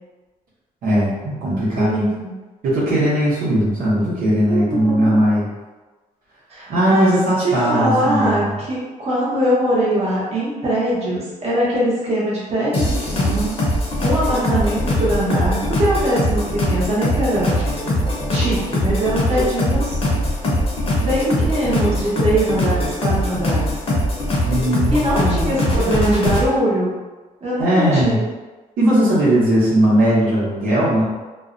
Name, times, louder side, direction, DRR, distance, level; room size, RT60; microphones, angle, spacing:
voice 1, 0.8-2.0 2.6-5.5 6.7-8.5 24.4-26.4 27.6-28.2 28.8-31.0, right 1 dB, 85° right, -8 dB, 0.9 m, -18 dB
voice 2, 1.7-2.3 4.4-5.1 6.5-7.1 7.4-13.5 14.0-17.9 18.3-20.0 21.0-23.7 24.9-26.9 27.4-28.2, right 1 dB, 45° right, -7 dB, 1.0 m, -22 dB
sound 1, 12.7-26.5, left 1 dB, 40° left, 0.7 m, -21 dB
2.5 x 2.1 x 2.5 m, 1.2 s
cardioid pair, 105°, 15 cm